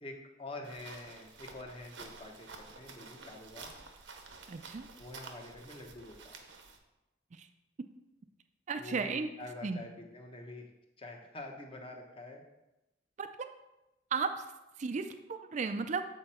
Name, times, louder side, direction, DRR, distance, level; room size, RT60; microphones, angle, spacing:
voice 1, 0.0-3.7 5.0-6.3 8.8-10.7 11.0-12.4, left 2 dB, 30° left, 2 dB, 1.0 m, -46 dB
sound 1, 0.6-6.8, right 4 dB, 85° right, 0.9 m, -51 dB
voice 2, 4.5-4.9 7.3-7.5 8.7-9.3 9.6-9.9 13.2-13.3 14.1-14.4 14.8-16.1, right 5 dB, 40° right, 8 dB, 0.4 m, -34 dB
7.9 x 4.4 x 4.3 m, 0.95 s
head